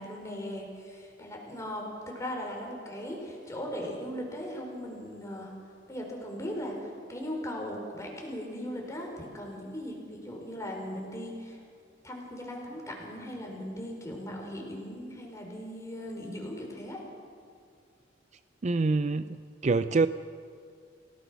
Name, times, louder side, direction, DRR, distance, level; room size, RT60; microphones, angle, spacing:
voice 1, 0.0-5.5 5.9-11.6 12.0-17.0, equal, 15° left, 0 dB, 4.6 m, -38 dB
voice 2, 18.6-19.4 19.6-20.1, right 3 dB, 35° right, 12 dB, 0.4 m, -25 dB
28.5 x 17.5 x 6.3 m, 2.3 s
head